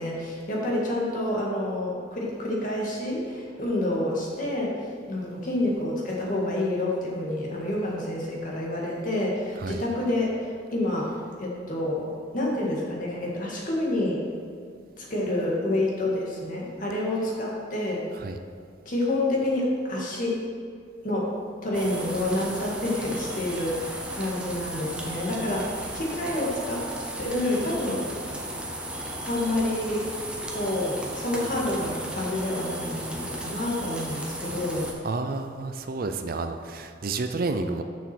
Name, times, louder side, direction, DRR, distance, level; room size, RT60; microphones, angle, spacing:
voice 1, 0.0-4.8 5.1-11.1 11.4-12.1 12.3-14.3 15.0-18.1 18.9-20.4 21.0-21.3 21.6-25.7 25.9-26.9 27.2-28.5 29.2-30.1 30.5-34.9, left 1 dB, 45° left, -3 dB, 1.9 m, -28 dB
sound 1, 21.7-34.9, right 1 dB, 5° right, 0.9 m, -35 dB
voice 2, 35.0-37.8, right 3 dB, 50° right, 7 dB, 0.5 m, -30 dB
7.2 x 6.2 x 6.1 m, 2.2 s
head